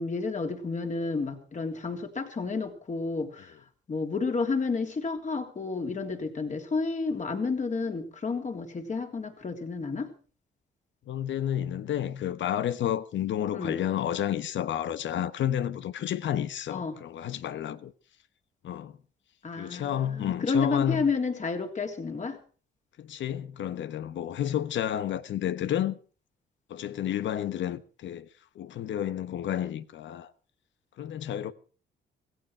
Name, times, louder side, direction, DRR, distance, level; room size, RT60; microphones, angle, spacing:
voice 1, 0.0-3.5 3.9-10.1 13.5-13.8 16.7-17.0 19.4-22.4, left 4 dB, 40° left, 3.4 m, -31 dB
voice 2, 11.1-17.9 18.6-19.0 19.6-21.1 23.0-26.0 26.7-28.3 28.5-30.3 31.0-31.5, left 10 dB, 70° left, 1.1 m, -31 dB
16.5 x 15.5 x 4.6 m
cardioid pair, 90°, 20 cm